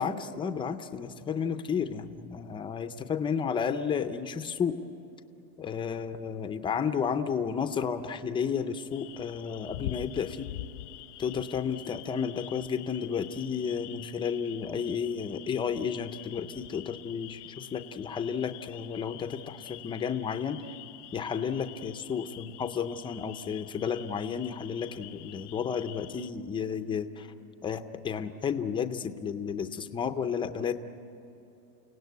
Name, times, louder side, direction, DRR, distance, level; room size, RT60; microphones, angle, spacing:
voice 1, 0.0-4.8 5.6-10.5 11.2-20.6 21.1-27.3 27.6-30.7, left 7 dB, 10° left, 9 dB, 0.5 m, -32 dB
sound 1, 8.9-26.3, left 16 dB, 85° left, 1.1 m, -46 dB
30.0 x 17.5 x 9.3 m, 3.0 s
supercardioid pair, 155°, 46 cm